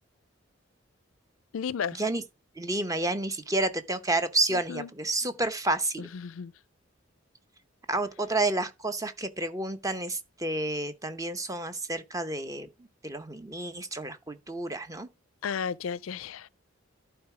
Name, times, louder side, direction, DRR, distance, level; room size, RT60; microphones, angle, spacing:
voice 1, 1.5-2.0 4.5-4.9 6.0-6.5 15.4-16.5, left 7 dB, 80° left, 0.4 m, -34 dB
voice 2, 2.6-6.1 7.9-12.7 13.0-15.1, right 2 dB, 15° right, 0.8 m, -30 dB
11.5 x 4.6 x 4.8 m
head